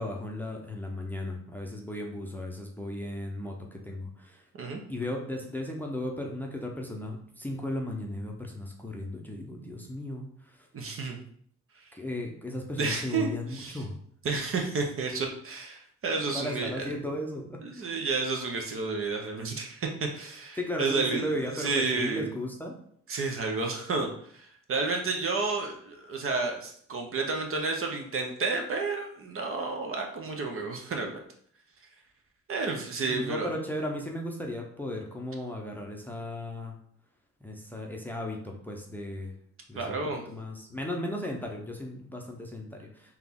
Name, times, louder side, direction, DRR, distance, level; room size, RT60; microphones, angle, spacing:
voice 1, 0.0-4.4 4.9-10.6 11.9-14.0 16.3-18.0 20.6-22.8 33.1-36.8 37.4-39.3 39.7-40.0 40.3-43.2, left 1 dB, 5° left, 1 dB, 0.7 m, -36 dB
voice 2, 10.7-11.2 12.8-13.8 14.2-16.9 17.6-22.3 23.1-31.2 32.5-33.5 39.8-40.3, right 4 dB, 45° right, 2 dB, 0.8 m, -31 dB
3.8 x 2.9 x 3.6 m, 0.62 s
cardioid pair, 90°, 30 cm